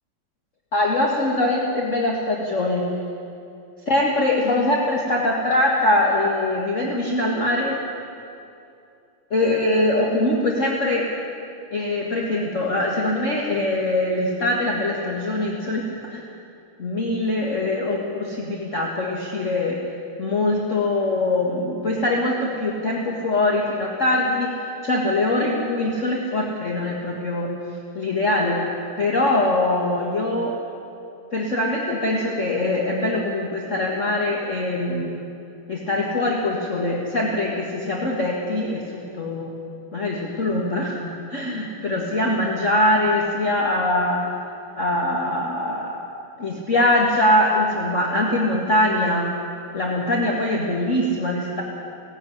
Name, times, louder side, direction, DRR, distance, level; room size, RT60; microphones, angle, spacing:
voice 1, 0.7-2.8 3.9-7.8 9.3-11.0 11.7-16.2 16.8-19.8 20.2-24.5 24.8-27.5 28.0-28.6 29.0-30.6 31.3-35.1 35.7-39.5 39.9-44.2 44.8-46.0 46.4-49.3 49.7-51.6, left 1 dB, 35° left, -2 dB, 2.0 m, -22 dB
17.5 x 15.5 x 9.9 m, 2.6 s
omnidirectional pair, 2.3 m